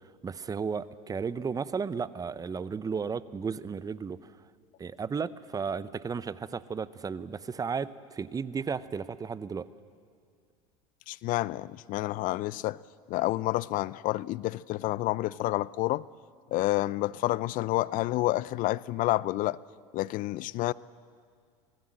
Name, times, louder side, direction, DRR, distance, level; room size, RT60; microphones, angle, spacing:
voice 1, 0.2-4.3 4.8-9.7, right 5 dB, 20° right, 0.7 m, -34 dB
voice 2, 11.1-12.8 13.1-16.0 16.5-19.6 19.9-20.7, left 17 dB, 50° left, 0.5 m, -29 dB
26.0 x 17.5 x 7.7 m
hypercardioid pair, 95°, 18 cm